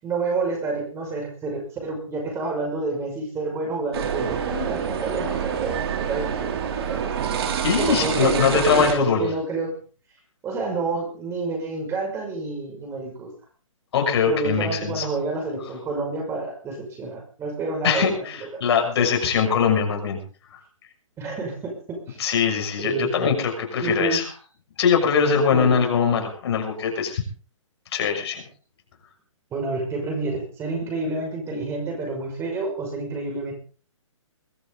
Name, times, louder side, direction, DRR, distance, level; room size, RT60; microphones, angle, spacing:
voice 1, 0.0-7.1 7.8-9.7 10.4-13.3 14.2-18.6 21.2-22.2 22.8-23.3 23.8-24.3 25.5-25.9 29.5-33.5, right 3 dB, 15° right, 1 dB, 5.9 m, -29 dB
sound 1, 3.9-8.9, right 7 dB, 50° right, 3.3 m, -27 dB
voice 2, 7.6-9.3 13.9-15.0 17.8-20.2 20.5-20.6 22.2-24.2 24.8-27.2 27.9-28.4, left 6 dB, 50° left, 3 dB, 6.4 m, -22 dB
22.5 x 13.0 x 4.0 m, 0.38 s
hypercardioid pair, 140°, 17 cm